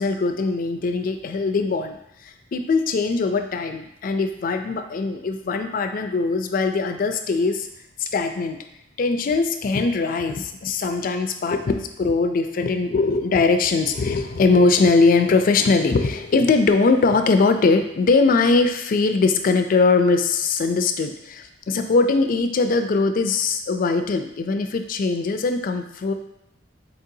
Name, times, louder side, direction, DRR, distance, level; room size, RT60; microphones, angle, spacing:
voice 1, 0.0-7.7 8.0-8.6 9.0-26.1, left 3 dB, 45° left, 7 dB, 0.3 m, -21 dB
4.3 x 3.8 x 2.7 m, 0.81 s
head